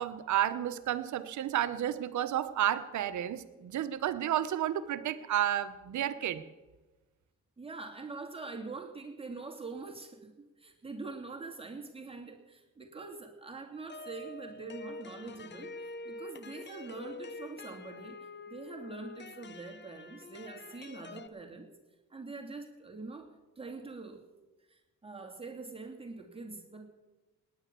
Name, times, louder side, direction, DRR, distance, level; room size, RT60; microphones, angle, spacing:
voice 1, 0.0-6.4, right 11 dB, 70° right, 11 dB, 1.2 m, -31 dB
voice 2, 7.6-10.3 10.6-21.7 22.1-23.3 23.6-24.2 24.7-26.9, right 3 dB, 20° right, 1 dB, 2.6 m, -44 dB
sound 1, 13.9-21.3, left 3 dB, 35° left, 1.0 m, -46 dB
18.5 x 10.0 x 6.9 m, 1.1 s
cardioid pair, 90°, 30 cm